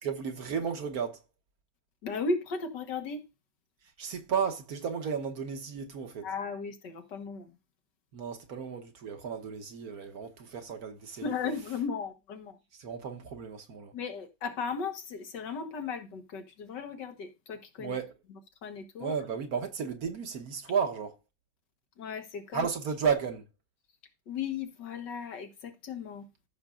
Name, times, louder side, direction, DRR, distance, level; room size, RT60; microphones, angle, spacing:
voice 1, 0.0-1.2 4.0-6.3 8.1-11.5 12.7-13.9 17.8-18.1 19.0-21.2 22.5-23.5, right 6 dB, 60° right, 1.5 m, -33 dB
voice 2, 2.0-3.2 6.2-7.6 11.2-12.6 13.9-17.9 18.6-19.1 22.0-22.7 24.3-26.3, left 5 dB, 85° left, 2.0 m, -36 dB
14.0 x 6.4 x 2.5 m
omnidirectional pair, 1.8 m